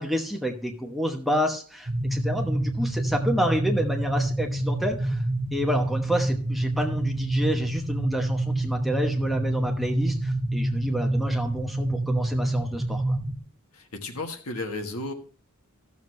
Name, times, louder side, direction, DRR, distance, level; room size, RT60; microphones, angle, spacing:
voice 1, 0.0-5.2 5.5-13.2, equal, ahead, 2 dB, 1.0 m, -29 dB
sound 1, 1.9-13.4, right 1 dB, 30° right, 1.6 m, -27 dB
voice 2, 13.7-15.1, left 2 dB, 75° left, 5 dB, 1.4 m, -33 dB
14.5 x 7.0 x 3.2 m, 0.43 s
head